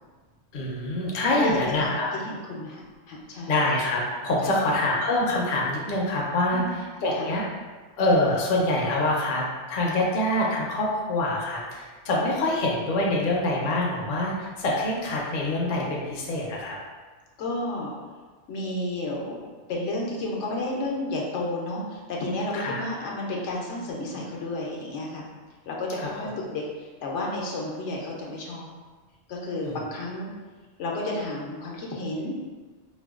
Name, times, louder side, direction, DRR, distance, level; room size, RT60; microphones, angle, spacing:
voice 1, 0.5-2.1 3.5-7.4 8.0-9.4 9.7-16.8 22.5-22.8 26.0-26.1 29.6-29.8, left 1 dB, 55° left, -3 dB, 0.7 m, -25 dB
voice 2, 1.3-1.9 2.2-2.8 3.1-3.6 4.4-4.5 6.5-6.7 7.1-7.3 17.4-17.9 18.5-25.3 25.7-28.7 29.3-30.3 30.8-32.3, left 2 dB, 80° left, -2 dB, 1.0 m, -31 dB
4.2 x 2.2 x 2.3 m, 1.4 s
omnidirectional pair, 1.2 m